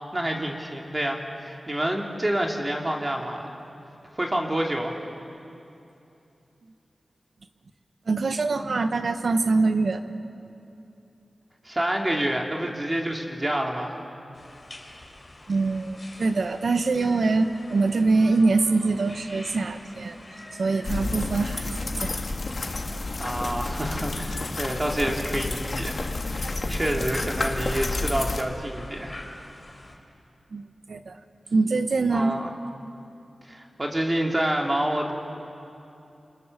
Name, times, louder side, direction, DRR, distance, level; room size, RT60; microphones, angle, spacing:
voice 1, 0.1-3.5 4.1-5.0 11.6-13.9 23.2-26.0 26.3-29.2 32.1-32.5 33.5-35.1, right 1 dB, 25° right, 0 dB, 2.8 m, -28 dB
voice 2, 8.1-10.0 15.5-20.2 20.6-22.2 30.5-31.2 31.5-32.4, right 3 dB, 70° right, 8 dB, 1.3 m, -24 dB
sound 1, 14.3-30.0, left 1 dB, 30° left, 4.0 m, -47 dB
sound 2, 20.8-28.4, left 2 dB, 55° left, 1.9 m, -30 dB
29.0 x 26.0 x 6.8 m, 2.7 s
wide cardioid pair, 105°, 0 cm